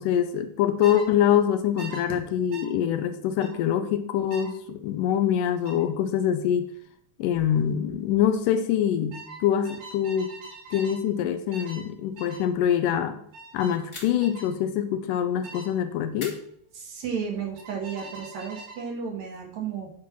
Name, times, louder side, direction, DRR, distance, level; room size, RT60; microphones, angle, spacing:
voice 1, 0.0-6.7 7.2-10.3 10.7-13.2 13.5-16.4, left 9 dB, 80° left, 9 dB, 2.1 m, -24 dB
sound 1, 0.8-1.1 1.8-2.0 2.5-2.7 3.4-3.6 4.3-4.5 5.6-5.9 7.3-7.6 7.8-8.2 9.1-11.0 11.5-11.9 12.2-12.5 13.3-13.8 14.2-14.5 15.4-15.7 17.6-18.8, right 3 dB, 80° right, 4.3 m, -43 dB
sound 2, 13.9-14.5 16.2-17.1, left 3 dB, 35° left, 1.2 m, -43 dB
voice 2, 16.7-19.9, right 6 dB, 60° right, 1 dB, 2.4 m, -33 dB
9.4 x 4.4 x 6.0 m, 0.65 s
omnidirectional pair, 4.0 m